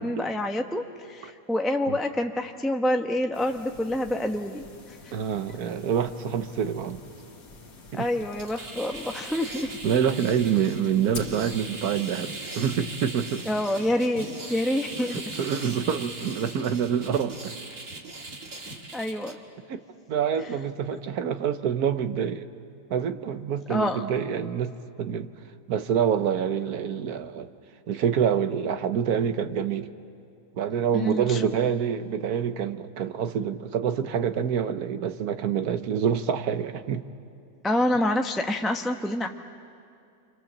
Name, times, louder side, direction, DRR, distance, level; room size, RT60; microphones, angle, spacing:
voice 1, 0.0-5.1 7.9-9.7 13.4-15.2 18.6-19.4 20.4-20.5 20.9-21.0 23.7-24.0 30.9-31.4 37.6-39.3, left 1 dB, ahead, 3 dB, 0.6 m, -27 dB
sound 1, 3.3-11.5, left 3 dB, 65° left, 2.6 m, -46 dB
voice 2, 5.1-7.0 7.9-8.0 9.8-13.4 15.4-17.5 19.7-19.8 20.1-22.5 22.9-25.3 25.7-27.5 27.9-29.9 30.6-37.0, right 8 dB, 60° right, 10 dB, 1.3 m, -26 dB
sound 2, 8.2-19.3, right 2 dB, 45° right, 2.3 m, -39 dB
30.0 x 25.5 x 7.3 m, 2.5 s
omnidirectional pair, 1.9 m